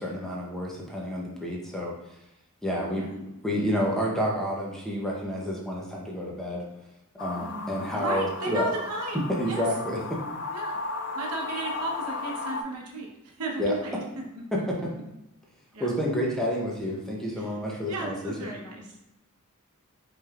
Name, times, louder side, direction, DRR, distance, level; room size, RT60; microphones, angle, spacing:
voice 1, 0.0-1.9 2.6-6.7 7.2-8.7 9.4-10.2 13.6-13.7 14.5-14.9 15.8-18.5, equal, ahead, -3 dB, 0.6 m, -29 dB
sound 1, 7.2-12.6, left 3 dB, 55° left, 0.3 m, -35 dB
voice 2, 7.4-9.7 10.5-10.7 11.1-14.0 14.3-14.4 15.7-15.9 17.4-17.5 17.8-18.9, right 2 dB, 80° right, -1 dB, 0.9 m, -34 dB
4.7 x 3.2 x 2.4 m, 0.90 s
head